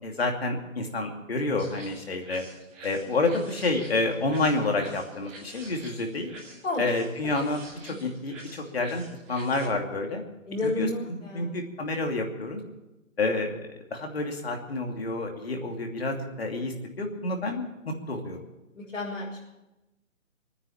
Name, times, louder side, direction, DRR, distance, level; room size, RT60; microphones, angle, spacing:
voice 1, 0.0-2.4 2.8-6.3 6.8-9.0 9.3-10.2 10.6-12.6 13.2-13.6 13.9-18.4, left 2 dB, 50° left, 3 dB, 2.8 m, -29 dB
sound 1, 1.6-9.6, right 2 dB, 10° right, 2.0 m, -48 dB
voice 2, 10.5-11.5 18.8-19.4, left 2 dB, 65° left, -6 dB, 5.8 m, -31 dB
20.0 x 9.8 x 7.3 m, 0.99 s
hypercardioid pair, 175°, 39 cm